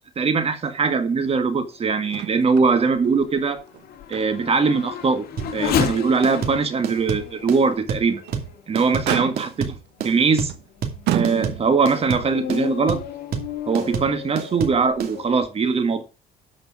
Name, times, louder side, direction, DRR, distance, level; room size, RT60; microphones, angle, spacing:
voice 1, 0.2-3.7 4.1-5.3 5.5-8.2 8.7-9.7 10.0-10.5 11.1-13.0 13.7-16.0, right 4 dB, 35° right, 1.9 m, -21 dB
Race car auto racing / Accelerating revving vroom, 1.4-9.4 10.0-10.1 10.7-15.5, left 8 dB, 65° left, 1.8 m, -33 dB
Motor vehicle (road), 2.1-2.7 3.0-3.1 3.7-4.6 5.0-5.2 5.7-5.8 8.0-8.5 9.0-9.7 10.5-10.6 11.1-11.9 12.9-13.0, right 12 dB, 80° right, 1.2 m, -29 dB
sound 1, 5.4-15.1, right 7 dB, 60° right, 2.6 m, -29 dB
12.0 x 5.3 x 5.1 m
cardioid pair, 110°, 17 cm